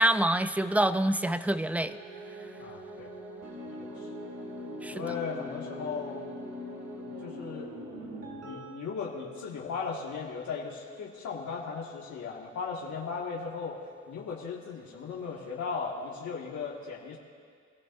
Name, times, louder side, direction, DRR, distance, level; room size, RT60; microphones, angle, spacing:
voice 1, 0.0-2.0 4.8-5.0, right 1 dB, 5° right, 12 dB, 0.4 m, -26 dB
sound 1, 1.8-10.3, equal, 55° right, 3.2 m, -42 dB
voice 2, 2.6-3.1 3.8-4.1 4.9-6.2 7.0-7.7 8.4-17.2, left 5 dB, 70° left, -3 dB, 2.0 m, -37 dB
25.0 x 14.0 x 2.6 m, 2.1 s
cardioid pair, 90°, 30 cm